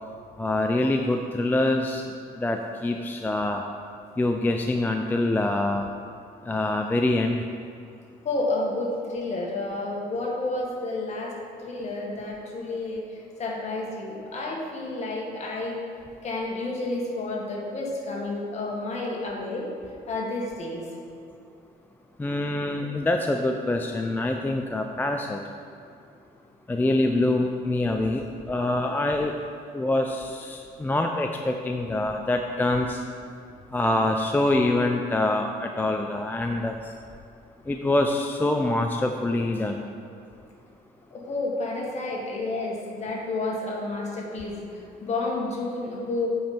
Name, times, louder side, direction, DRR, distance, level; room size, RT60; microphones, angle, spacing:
voice 1, 0.4-2.0 2.4-3.6 4.2-5.9 6.5-7.4 22.2-25.4 26.7-29.4 29.7-33.0 33.7-36.9 37.7-39.8, left 2 dB, 10° left, 3 dB, 0.4 m, -25 dB
voice 2, 8.2-15.8 16.2-19.7 20.1-20.9 41.1-46.3, left 2 dB, 40° left, -2 dB, 1.7 m, -30 dB
8.4 x 5.3 x 4.4 m, 2.6 s
cardioid pair, 110°, 17 cm